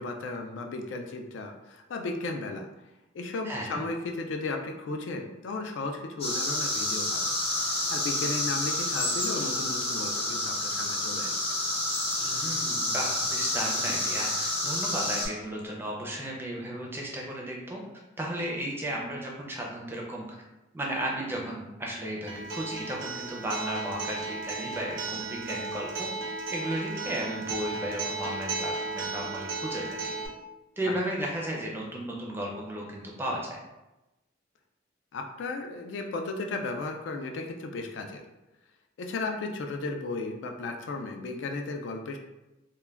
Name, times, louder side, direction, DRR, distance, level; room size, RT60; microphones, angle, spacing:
voice 1, 0.0-2.7 3.1-7.3 7.6-11.4 30.8-30.9 35.1-38.2 39.0-42.2, left 3 dB, 70° left, 4 dB, 0.3 m, -35 dB
voice 2, 3.4-3.8 12.2-17.8 18.2-20.2 20.7-26.1 26.5-30.1 30.8-33.6, right 1 dB, 10° right, -2 dB, 0.4 m, -34 dB
sound 1, 6.2-15.3, left 1 dB, 30° left, 0.6 m, -29 dB
Acoustic guitar, 22.3-30.3, right 3 dB, 80° right, 0.5 m, -35 dB
2.2 x 2.1 x 3.3 m, 1.0 s
head